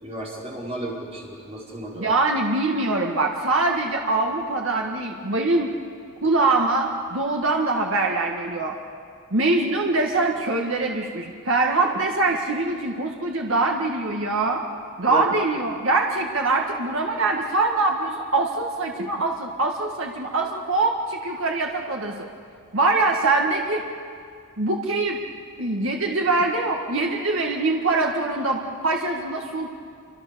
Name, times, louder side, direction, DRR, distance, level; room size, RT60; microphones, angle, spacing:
voice 1, 0.0-2.1 15.1-15.2, right 1 dB, 30° right, -4 dB, 5.1 m, -33 dB
voice 2, 2.0-5.8 6.2-8.8 9.3-14.6 15.0-22.2 22.7-23.8 24.6-25.2 25.6-29.7, right 3 dB, 75° right, 1 dB, 1.7 m, -23 dB
27.5 x 25.5 x 6.9 m, 2.2 s
head